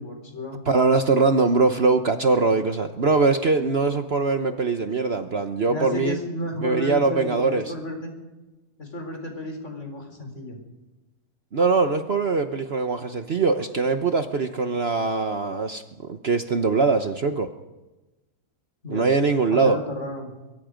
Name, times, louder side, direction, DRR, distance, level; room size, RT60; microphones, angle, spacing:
voice 1, 0.0-0.6 5.7-8.1 8.8-10.6 18.8-19.1 19.5-20.3, left 1 dB, 50° left, 4 dB, 4.8 m, -32 dB
voice 2, 0.7-6.2 6.6-7.7 11.5-17.5 18.9-19.8, right 4 dB, 45° right, 7 dB, 1.1 m, -22 dB
23.5 x 23.5 x 5.2 m, 1.1 s
omnidirectional pair, 1.6 m